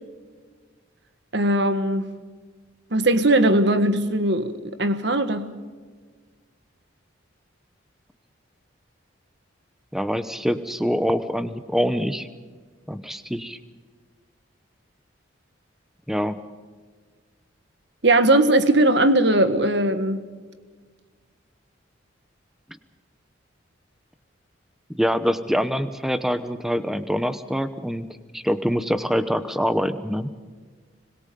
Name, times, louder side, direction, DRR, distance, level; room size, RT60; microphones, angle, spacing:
voice 1, 1.3-2.1 2.9-5.5 18.0-20.2, right 1 dB, 60° right, 10 dB, 1.5 m, -19 dB
voice 2, 9.9-12.3 12.9-13.6 16.1-16.4 24.9-28.1 28.3-30.3, equal, ahead, 12 dB, 0.9 m, -25 dB
25.5 x 21.5 x 5.3 m, 1.5 s
head